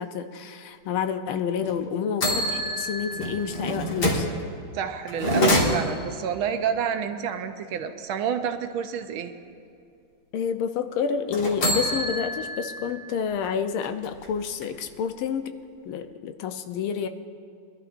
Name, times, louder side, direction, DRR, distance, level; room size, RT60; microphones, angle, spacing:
voice 1, 0.0-4.3 10.3-15.5 15.9-17.1, left 7 dB, 75° left, 9 dB, 1.5 m, -29 dB
sound 1, 1.6-1.7 2.2-4.3 5.1-6.2 11.3-12.9 13.3-13.4 13.8-14.9, equal, 50° left, 2.3 m, -26 dB
voice 2, 4.7-9.3, right 8 dB, 75° right, 7 dB, 1.5 m, -29 dB
23.5 x 12.0 x 2.5 m, 2.4 s
omnidirectional pair, 2.4 m